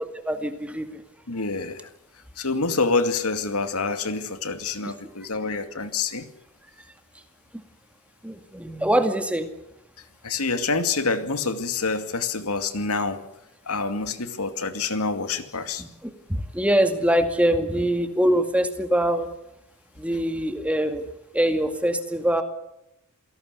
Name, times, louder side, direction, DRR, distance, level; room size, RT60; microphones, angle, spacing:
voice 1, 0.3-1.0 8.2-9.5 15.8-19.3 20.0-21.0 21.3-22.4, right 1 dB, 5° right, 7 dB, 2.2 m, -23 dB
voice 2, 1.3-1.9 2.4-6.2 10.2-13.2 13.7-15.8, left 4 dB, 80° left, 10 dB, 2.4 m, -27 dB
27.5 x 18.5 x 8.2 m, 0.86 s
head